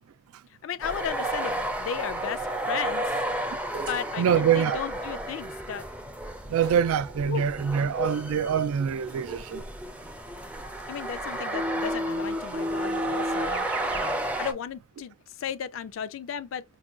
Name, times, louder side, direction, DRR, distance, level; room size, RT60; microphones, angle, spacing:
voice 1, 0.6-3.2 3.8-5.8 7.3-7.5 10.9-14.1 14.4-16.6, left 8 dB, 65° left, 0.3 m, -35 dB
sound 1, 0.8-14.5, right 1 dB, 5° right, 0.4 m, -33 dB
voice 2, 4.2-4.8 6.5-9.6, right 8 dB, 85° right, 0.3 m, -25 dB
Keyboard (musical), 11.5-14.3, left 1 dB, 50° right, 0.7 m, -31 dB
4.8 x 2.2 x 2.4 m
head